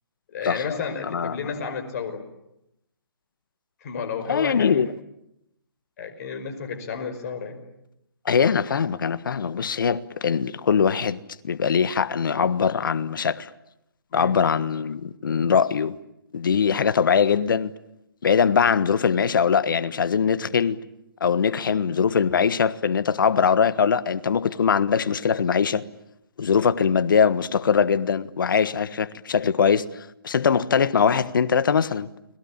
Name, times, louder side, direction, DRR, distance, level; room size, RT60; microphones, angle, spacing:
voice 1, 0.3-2.2 3.8-4.8 6.0-7.6 14.1-14.4, left 6 dB, 40° left, 5.4 m, -31 dB
voice 2, 1.0-1.4 4.3-4.9 8.2-13.5 14.1-15.9 16.3-17.7 18.2-20.8 21.2-25.8 26.4-32.1, left 6 dB, 60° left, 1.4 m, -22 dB
30.0 x 21.5 x 8.8 m
figure-of-eight pair, 140°, 13 cm